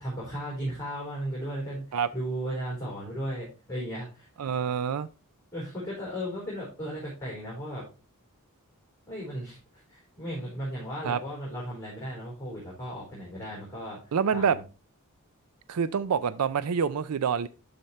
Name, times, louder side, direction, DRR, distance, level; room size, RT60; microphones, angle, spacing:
voice 1, 0.0-4.3 5.5-7.9 9.1-14.6, equal, 10° left, 3.9 m, -36 dB
voice 2, 4.4-5.1 11.0-11.2 14.1-14.6 15.7-17.5, right 6 dB, 80° right, 0.4 m, -26 dB
12.0 x 4.3 x 3.2 m
head